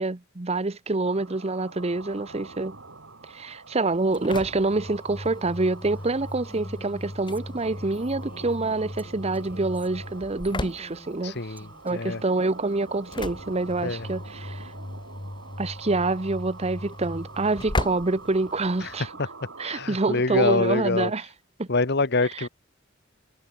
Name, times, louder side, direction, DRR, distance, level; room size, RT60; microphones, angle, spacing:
voice 1, 0.0-2.8 3.3-11.6 11.8-14.7 15.6-19.1 19.6-21.3 21.6-21.7 22.2-22.3, right 2 dB, 35° right, 0.9 m, -26 dB
sound 1, 1.0-20.2, right 3 dB, 80° right, 4.5 m, -45 dB
Engine / Slam, 3.9-19.0, left 1 dB, 25° left, 1.1 m, -37 dB
Female speech woman speaking, 5.2-12.3, equal, 10° right, 5.8 m, -51 dB
voice 2, 11.2-12.2 13.8-14.1 18.8-18.9 19.2-19.3 19.6-21.1 21.7-22.5, left 3 dB, 60° left, 1.4 m, -25 dB
head